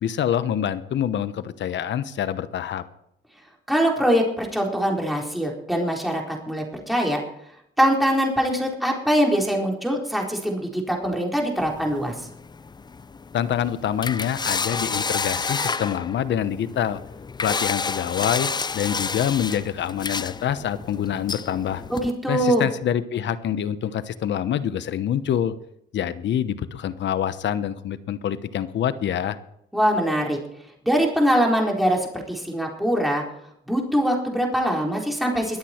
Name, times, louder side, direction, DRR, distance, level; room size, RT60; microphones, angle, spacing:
voice 1, 0.0-2.8 13.3-17.0 17.4-18.5 18.7-21.8 22.3-25.5 25.9-29.4, left 9 dB, 65° left, 14 dB, 1.0 m, -26 dB
voice 2, 3.7-7.2 7.8-12.1 21.9-22.6 29.7-30.4 30.8-33.2 33.7-35.6, equal, ahead, -1 dB, 4.2 m, -23 dB
sound 1, 11.6-22.1, left 4 dB, 20° left, 0.5 m, -30 dB
22.0 x 8.4 x 4.5 m, 0.75 s
cardioid pair, 90°, 20 cm